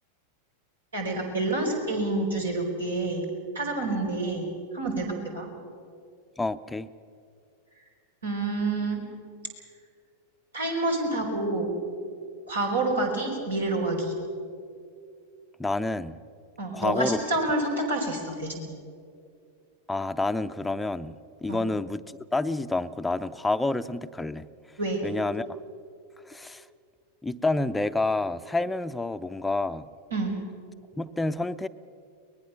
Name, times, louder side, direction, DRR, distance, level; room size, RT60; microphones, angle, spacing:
voice 1, 0.9-3.3 3.5-5.5 8.2-9.0 10.5-11.7 12.5-14.1 16.6-18.6 21.5-21.6 24.8-25.0 30.1-30.3, right 2 dB, 70° right, 1 dB, 4.6 m, -28 dB
voice 2, 6.4-6.9 15.6-16.2 16.7-17.2 19.9-24.5 25.0-25.5 26.3-26.6 27.2-29.9 31.0-31.7, left 2 dB, 5° left, 11 dB, 0.6 m, -28 dB
23.5 x 19.5 x 6.7 m, 2.4 s
figure-of-eight pair, 90°, 0 cm